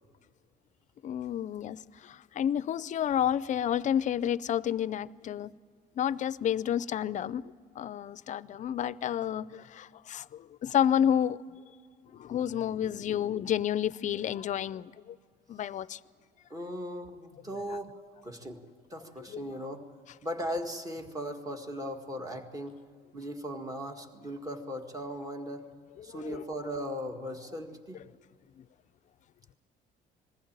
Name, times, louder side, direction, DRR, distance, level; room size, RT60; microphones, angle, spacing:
voice 1, 1.0-5.5 6.0-7.4 7.8-11.4 12.1-15.2 15.5-16.0 19.3-19.5 26.1-26.4, left 9 dB, 45° left, 0.5 m, -30 dB
voice 2, 16.5-17.9 18.2-18.6 18.9-19.9 20.2-22.8 23.1-25.7 26.0-28.0, equal, 20° right, 1.9 m, -38 dB
21.0 x 15.0 x 8.8 m
cardioid pair, 110°, 17 cm